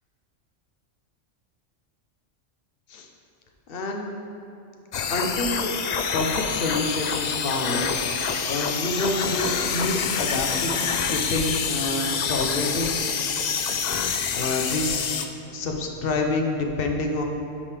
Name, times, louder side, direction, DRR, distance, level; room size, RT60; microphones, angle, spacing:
voice 1, 3.7-4.1 5.1-5.7 6.1-12.9 14.3-15.2 15.5-17.2, left 2 dB, 55° left, 2 dB, 0.9 m, -28 dB
sound 1, 4.9-15.3, left 6 dB, 90° left, 0.3 m, -27 dB
10.5 x 5.0 x 3.3 m, 2.9 s
omnidirectional pair, 1.3 m